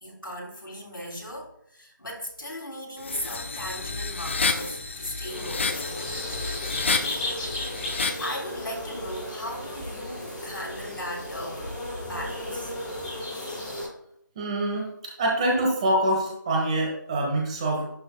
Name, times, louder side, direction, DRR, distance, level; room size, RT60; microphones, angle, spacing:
voice 1, 0.0-6.0 8.2-12.7, equal, 80° left, -2 dB, 3.3 m, -37 dB
sound 1, 3.0-8.3, left 4 dB, 35° left, 0.7 m, -30 dB
sound 2, 5.3-13.8, left 1 dB, 5° left, 2.5 m, -35 dB
voice 2, 14.3-17.9, right 1 dB, 20° right, -1 dB, 1.3 m, -25 dB
11.0 x 6.4 x 2.3 m, 0.73 s
figure-of-eight pair, 160°, 11 cm